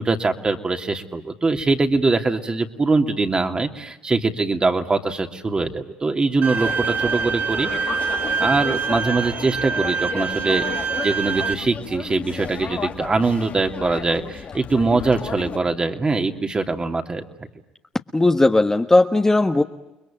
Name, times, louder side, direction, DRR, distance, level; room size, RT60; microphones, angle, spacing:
voice 1, 0.0-7.7 8.4-17.2, right 3 dB, 25° right, 5 dB, 2.8 m, -22 dB
Bowed string instrument, 6.4-11.5, right 5 dB, 50° right, 1.0 m, -25 dB
sound 1, 6.6-15.6, left 6 dB, 50° left, 1.8 m, -34 dB
voice 2, 18.1-19.6, left 2 dB, 15° left, 6 dB, 1.4 m, -17 dB
30.0 x 21.5 x 9.0 m, 0.92 s
supercardioid pair, 75°, 3 cm